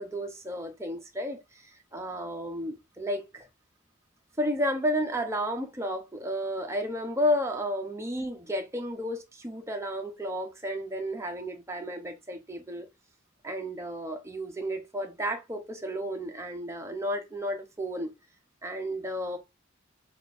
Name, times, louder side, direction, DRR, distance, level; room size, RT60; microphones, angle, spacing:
voice 1, 0.0-3.5 4.4-12.9 13.4-18.1 18.6-19.4, equal, 15° right, 0.7 m, -32 dB
6.5 x 2.5 x 2.5 m
head